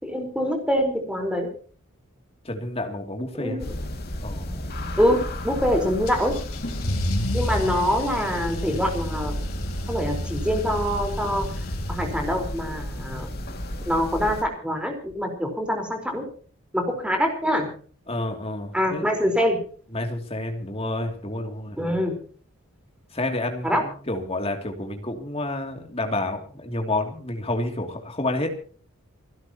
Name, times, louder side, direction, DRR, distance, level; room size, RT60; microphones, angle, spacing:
voice 1, 0.0-1.5 3.3-3.7 5.0-6.3 7.3-9.3 9.9-11.5 11.9-13.3 13.9-16.3 16.7-17.7 18.7-19.6 21.8-22.2 23.6-23.8, equal, 5° right, 3 dB, 4.4 m, -24 dB
voice 2, 2.4-3.6 4.2-4.7 18.1-19.1 19.9-22.0 23.1-28.6, left 2 dB, 25° left, 3 dB, 2.8 m, -29 dB
sound 1, 3.6-14.4, left 1 dB, 45° left, 2.4 m, -33 dB
Car / Engine starting / Accelerating revving vroom, 6.1-12.6, left 1 dB, 85° left, 3.7 m, -31 dB
29.5 x 11.5 x 3.0 m, 0.42 s
head